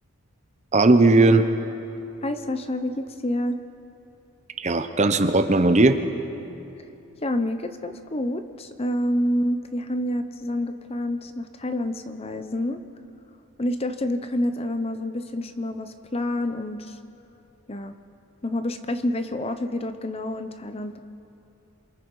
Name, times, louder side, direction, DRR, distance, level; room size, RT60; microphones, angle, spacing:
voice 1, 0.7-1.4 4.6-6.0, right 2 dB, 30° right, 8 dB, 0.8 m, -17 dB
voice 2, 2.2-3.6 7.2-12.8 13.6-17.0 17.7-17.9 18.4-21.0, left 1 dB, 25° left, 9 dB, 0.7 m, -28 dB
27.5 x 23.0 x 4.8 m, 2.8 s
head